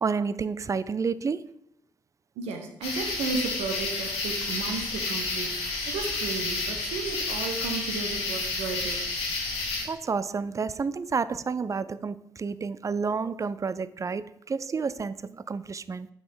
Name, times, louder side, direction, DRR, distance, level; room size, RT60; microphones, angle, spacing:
voice 1, 0.0-1.5 9.9-16.1, right 5 dB, 30° right, 16 dB, 0.4 m, -30 dB
voice 2, 2.4-9.1, right 4 dB, 70° right, 4 dB, 1.1 m, -34 dB
sound 1, 2.8-9.8, left 3 dB, 65° left, 1.7 m, -30 dB
7.9 x 5.9 x 3.8 m, 0.78 s
figure-of-eight pair, 40°, 12 cm